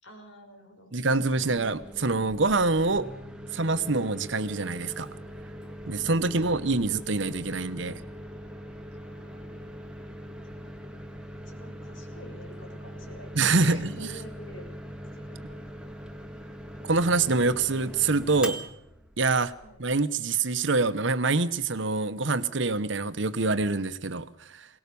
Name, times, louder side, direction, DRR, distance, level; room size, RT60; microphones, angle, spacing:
voice 1, 0.0-0.9 6.2-6.6 9.0-9.7 10.6-10.7 10.9-11.1 11.4-14.8 15.1-16.0 16.8-16.9 19.6-19.8, equal, 75° left, 3 dB, 6.1 m, -49 dB
voice 2, 0.9-3.1 3.5-5.1 5.9-8.0 13.3-13.8 16.8-18.6 19.2-19.5 19.8-24.7, right 3 dB, 65° right, 13 dB, 1.1 m, -25 dB
Microwave oven, 1.2-20.0, equal, 5° right, 1.9 m, -42 dB
22.5 x 19.0 x 7.0 m, 0.75 s
head